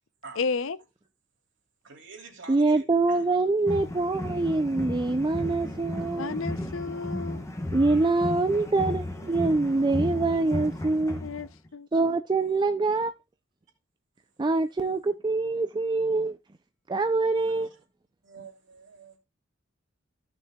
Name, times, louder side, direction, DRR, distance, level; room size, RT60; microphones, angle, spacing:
voice 1, 0.4-0.8 6.2-7.5 11.2-11.9, left 4 dB, 75° left, 0.6 m, -32 dB
voice 2, 1.8-3.3 7.9-8.8 17.5-17.8 18.2-19.2, right 4 dB, 65° right, 3.0 m, -47 dB
voice 3, 2.5-6.4 7.7-11.2 11.9-13.1 14.4-16.4 16.9-17.7, right 3 dB, 20° right, 0.4 m, -25 dB
sound 1, 3.7-11.7, left 1 dB, 15° left, 1.1 m, -34 dB
15.0 x 6.3 x 2.3 m
head